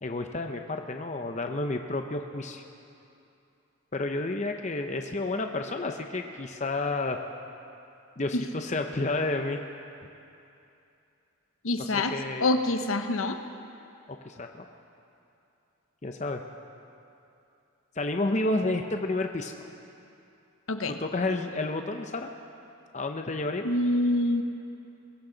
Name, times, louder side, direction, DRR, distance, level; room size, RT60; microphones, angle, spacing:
voice 1, 0.0-2.6 3.9-7.2 8.2-9.6 11.8-12.5 14.1-14.6 16.0-16.4 18.0-19.5 20.9-22.3 22.9-23.7, left 2 dB, 35° left, 5 dB, 0.6 m, -30 dB
voice 2, 11.6-13.4 20.7-21.0 23.6-24.4, left 2 dB, 70° left, 7 dB, 0.9 m, -26 dB
22.0 x 15.5 x 3.9 m, 2.7 s
head